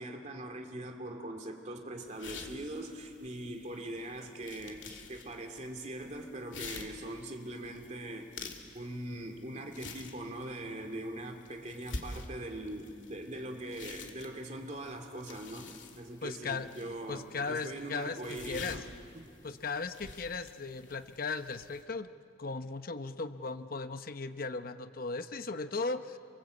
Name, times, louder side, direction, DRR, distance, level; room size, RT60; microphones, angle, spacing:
voice 1, 0.0-8.3 8.7-18.9 19.1-19.3, right 1 dB, 40° right, 4 dB, 2.7 m, -41 dB
sound 1, 2.1-21.8, left 3 dB, 75° left, 2.4 m, -49 dB
voice 2, 16.2-16.7 17.1-18.2 18.5-18.8 19.4-22.1 22.4-26.2, left 4 dB, 50° left, 10 dB, 0.8 m, -37 dB
28.0 x 25.5 x 8.3 m, 2.4 s
head